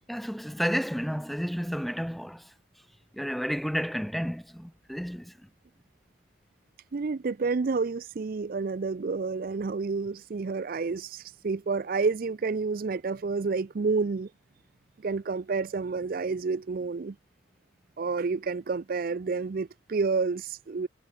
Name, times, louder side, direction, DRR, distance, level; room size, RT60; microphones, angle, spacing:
voice 1, 0.1-2.4 3.1-5.3, equal, ahead, 1.5 m, -31 dB
voice 2, 6.9-14.3 15.0-17.1 18.0-20.9, right 4 dB, 50° right, 0.4 m, -29 dB
head